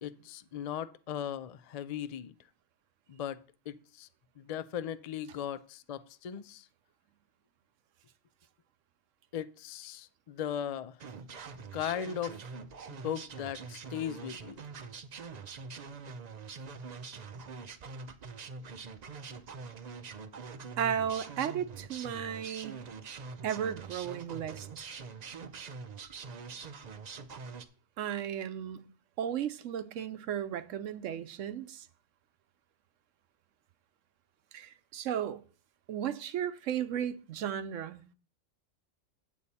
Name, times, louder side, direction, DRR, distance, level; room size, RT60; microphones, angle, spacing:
voice 1, 0.0-2.3 3.1-3.4 3.7-4.1 4.4-6.7 9.3-11.0 11.7-12.4 13.0-14.6, left 9 dB, 80° left, 0.3 m, -38 dB
sound 1, 11.0-27.7, right 5 dB, 45° right, 0.6 m, -44 dB
voice 2, 20.8-22.8 23.4-24.7 25.4-25.5 28.0-28.8 29.2-31.9 34.5-35.4 35.9-38.0, right 9 dB, 80° right, 1.0 m, -34 dB
8.6 x 8.0 x 4.1 m
omnidirectional pair, 1.3 m